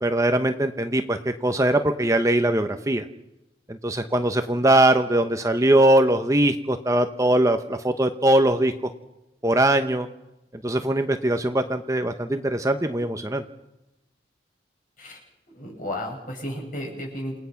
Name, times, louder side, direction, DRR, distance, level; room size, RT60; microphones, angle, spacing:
voice 1, 0.0-3.0 3.7-8.7 9.4-10.1 10.6-13.4, right 1 dB, 20° right, 7 dB, 1.0 m, -21 dB
voice 2, 15.5-17.4, left 1 dB, 50° left, 0 dB, 7.7 m, -33 dB
28.5 x 18.5 x 5.9 m, 0.92 s
head